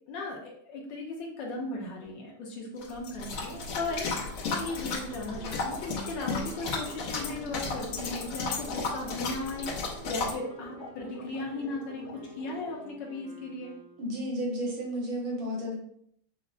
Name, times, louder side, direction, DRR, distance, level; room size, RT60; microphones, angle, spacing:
voice 1, 0.1-13.7, left 2 dB, 70° left, -2 dB, 1.4 m, -37 dB
sound 1, 2.8-10.4, left 4 dB, 90° left, 1.7 m, -34 dB
sound 2, 3.4-12.9, left 1 dB, 50° left, 0.5 m, -48 dB
Wind instrument woodwind instrument, 5.3-14.4, equal, 50° right, 0.8 m, -50 dB
voice 2, 14.0-15.7, equal, 80° right, -3 dB, 2.0 m, -32 dB
5.9 x 2.0 x 2.5 m, 0.67 s
omnidirectional pair, 2.2 m